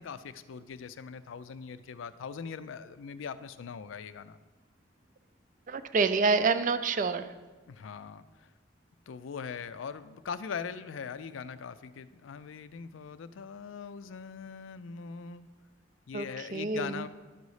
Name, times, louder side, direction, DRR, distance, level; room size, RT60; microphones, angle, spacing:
voice 1, 0.0-4.4 7.7-8.5 9.1-15.5 16.1-17.1, left 6 dB, 90° left, 13 dB, 0.4 m, -41 dB
voice 2, 5.7-7.3 16.1-17.1, right 4 dB, 45° right, 11 dB, 0.4 m, -27 dB
11.5 x 4.1 x 4.8 m, 1.3 s
head